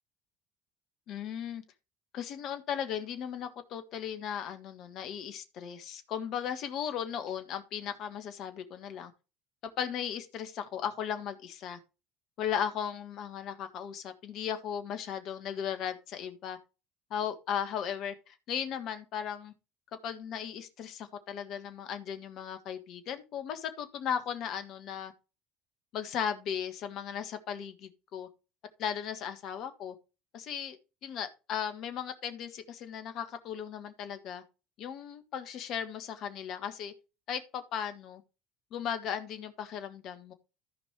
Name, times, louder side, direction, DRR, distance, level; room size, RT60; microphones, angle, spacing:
voice 1, 1.1-1.6 2.1-9.1 9.6-11.8 12.4-16.6 17.1-19.5 20.0-25.1 25.9-28.3 28.8-29.9 30.3-30.8 31.0-34.4 34.8-36.9 37.3-38.2 38.7-40.3, left 8 dB, 55° left, 1.6 m, -36 dB
14.5 x 5.4 x 3.2 m
figure-of-eight pair, 65°, 0 cm